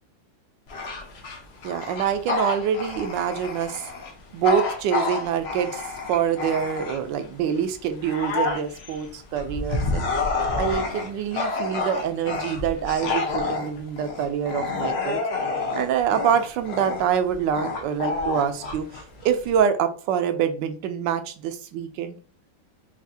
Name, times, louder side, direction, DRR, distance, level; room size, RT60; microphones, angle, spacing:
Bark / Growling, 0.7-7.2 7.7-19.6, left 3 dB, 80° left, 0.5 m, -29 dB
voice 1, 1.6-3.9 4.3-5.8 6.1-10.1 10.6-15.2 15.7-22.2, right 8 dB, 75° right, 9 dB, 1.2 m, -25 dB
5.8 x 2.4 x 2.7 m, 0.40 s
omnidirectional pair, 2.1 m